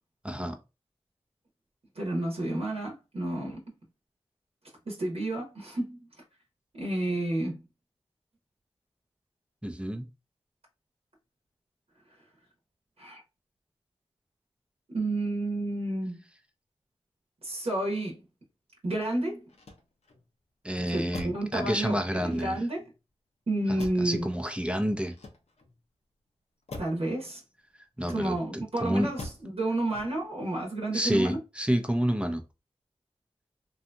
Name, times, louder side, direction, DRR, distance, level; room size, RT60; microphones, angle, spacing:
voice 1, 0.2-0.6 9.6-10.1 20.6-22.6 23.7-25.1 28.0-29.1 30.9-32.4, equal, 10° right, 0.5 m, -29 dB
voice 2, 1.9-3.6 4.9-6.0 6.7-7.6 13.0-13.2 14.9-16.2 17.4-18.2 18.8-19.4 20.9-22.8 23.5-24.3 26.8-27.4 28.1-31.4, right 1 dB, 65° right, 0.9 m, -30 dB
Motor vehicle (road), 19.4-20.3 21.1-21.6 22.2-22.9 23.8-24.2 25.0-25.8 26.7-27.1 28.0-28.6 29.2-29.6 29.9-30.4, left 2 dB, 75° left, 0.7 m, -44 dB
2.7 x 2.6 x 2.2 m
cardioid pair, 45°, 11 cm